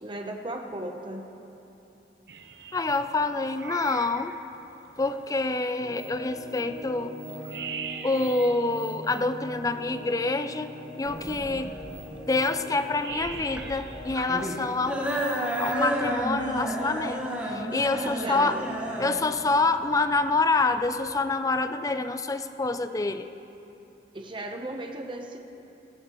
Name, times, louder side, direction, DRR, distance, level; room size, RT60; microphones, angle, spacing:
voice 1, 0.0-1.3 18.0-18.5 24.1-25.4, right 1 dB, 25° right, 2 dB, 0.9 m, -36 dB
sound 1, 2.3-15.8, right 7 dB, 65° right, 0.7 m, -44 dB
voice 2, 2.7-4.3 5.0-7.2 8.0-11.7 12.3-15.1 15.6-18.6 19.0-23.3, left 3 dB, 20° left, 10 dB, 0.4 m, -27 dB
sound 2, 5.8-14.5, left 1 dB, 40° left, 1.4 m, -42 dB
sound 3, 11.0-21.1, right 1 dB, 10° right, 1.5 m, -32 dB
17.0 x 15.0 x 3.0 m, 3.0 s
head